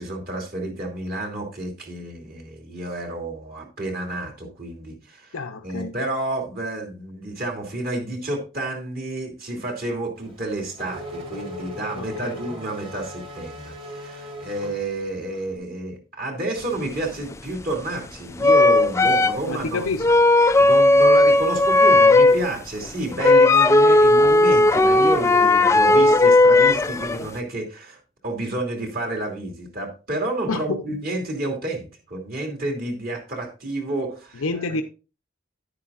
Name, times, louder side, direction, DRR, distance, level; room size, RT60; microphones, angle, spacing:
voice 1, 0.0-5.4 5.6-19.8 20.6-34.6, right 2 dB, 45° right, 2.6 m, -30 dB
voice 2, 5.3-5.9 12.0-12.4 19.5-20.1 30.5-31.0 34.3-34.8, left 3 dB, 90° left, 0.7 m, -28 dB
Race car auto racing / Accelerating revving vroom, 10.2-15.5, equal, 25° right, 1.7 m, -38 dB
sound 1, 17.3-17.4 18.4-19.5 20.0-22.5 22.9-23.0 23.1-27.3, left 2 dB, 15° left, 0.3 m, -15 dB
10.5 x 9.8 x 2.5 m
head